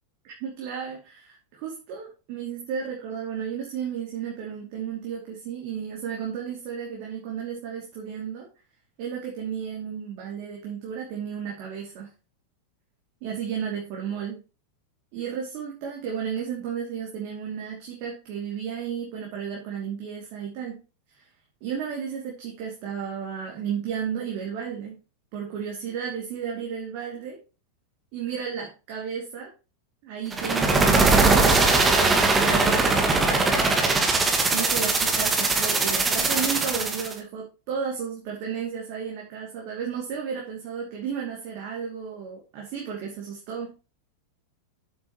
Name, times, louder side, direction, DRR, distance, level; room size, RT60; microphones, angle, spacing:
voice 1, 0.2-8.5 9.0-12.1 13.2-14.4 15.1-20.8 21.1-21.2 21.6-25.0 25.3-27.4 28.1-29.5 30.0-33.7 34.5-43.8, right 7 dB, 45° right, -2 dB, 2.5 m, -33 dB
sound 1, 30.3-37.1, right 3 dB, 15° right, 1.8 m, -21 dB
9.4 x 8.1 x 3.0 m, 0.32 s
figure-of-eight pair, 90°, 0 cm